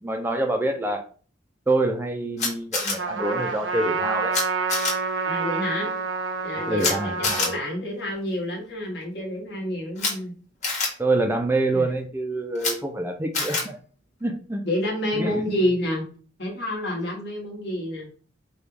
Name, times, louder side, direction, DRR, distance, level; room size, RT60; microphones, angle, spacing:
voice 1, 0.0-1.0 1.7-4.3 6.7-7.5 11.0-13.7 14.2-14.6 15.2-15.5, right 2 dB, 10° right, 4 dB, 0.4 m, -26 dB
Camera, 2.4-2.9 4.3-4.4 4.7-4.9 6.8-6.9 7.2-7.5 10.0-10.1 10.6-10.9 12.6-12.7 13.3-13.6, left 3 dB, 40° left, 1.4 m, -25 dB
Trumpet, 3.0-7.6, right 4 dB, 90° right, 0.7 m, -28 dB
voice 2, 5.3-5.9 6.4-10.3 11.7-11.9 14.6-16.1 16.4-18.1, left 1 dB, 65° left, -2 dB, 1.5 m, -28 dB
4.9 x 2.3 x 3.3 m, 0.41 s
head